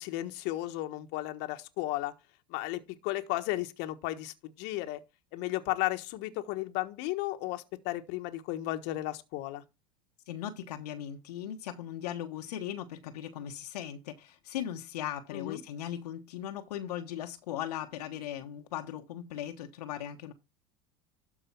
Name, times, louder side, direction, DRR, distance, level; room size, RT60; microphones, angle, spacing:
voice 1, 0.0-2.1 2.5-5.0 5.3-9.6 15.3-15.6, left 16 dB, 60° left, 1.3 m, -34 dB
voice 2, 10.3-20.3, left 10 dB, 80° left, 1.2 m, -38 dB
12.5 x 4.7 x 4.5 m
hypercardioid pair, 90°, 20 cm